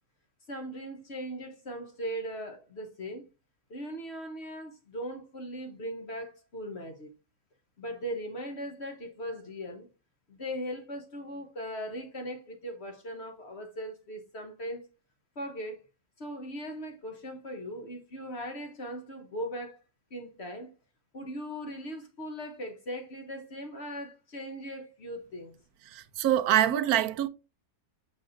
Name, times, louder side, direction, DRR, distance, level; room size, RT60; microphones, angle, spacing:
voice 1, 0.5-3.3 3.7-7.1 7.8-9.9 10.3-14.9 15.4-15.8 16.2-19.8 20.1-20.7 21.1-25.5, equal, 50° left, 1.0 m, -39 dB
voice 2, 25.9-27.3, right 11 dB, 70° right, 1.0 m, -25 dB
6.3 x 6.1 x 2.5 m
omnidirectional pair, 1.7 m